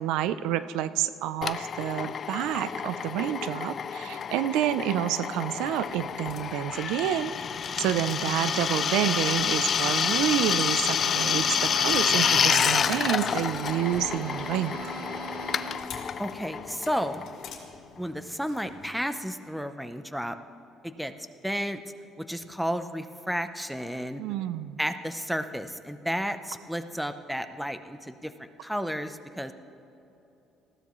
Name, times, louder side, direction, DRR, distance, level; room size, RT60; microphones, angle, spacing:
voice 1, 0.0-7.3 7.8-14.9 24.2-24.8, right 11 dB, 90° right, 14 dB, 0.5 m, -29 dB
Drill, 1.4-17.7, left 7 dB, 40° left, 0.4 m, -28 dB
sound 1, 5.7-19.0, left 7 dB, 65° left, 2.5 m, -45 dB
sound 2, 10.8-15.8, right 4 dB, 65° right, 3.8 m, -40 dB
voice 2, 16.2-17.2 18.0-20.4 20.8-21.1 21.4-21.8 22.3-24.2 24.8-29.5, equal, ahead, 10 dB, 0.6 m, -32 dB
19.5 x 15.0 x 3.1 m, 3.0 s
cardioid pair, 120°, 0 cm